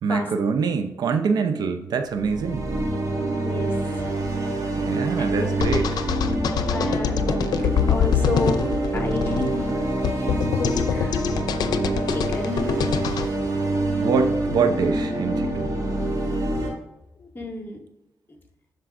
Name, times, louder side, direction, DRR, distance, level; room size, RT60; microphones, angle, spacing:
voice 1, 0.0-2.7 4.7-5.9 14.0-15.7, right 5 dB, 85° right, 8 dB, 0.7 m, -24 dB
sound 1, 2.1-16.7, right 2 dB, 65° right, 2.4 m, -26 dB
voice 2, 3.4-4.0 5.2-5.7 6.7-7.4 7.8-9.6 10.1-11.3 12.1-12.8 17.3-17.8, left 2 dB, 30° left, 1 dB, 2.1 m, -31 dB
sound 2, 5.6-13.3, left 8 dB, 90° left, 0.5 m, -25 dB
12.0 x 4.6 x 2.5 m, 0.93 s
cardioid pair, 75°, 7 cm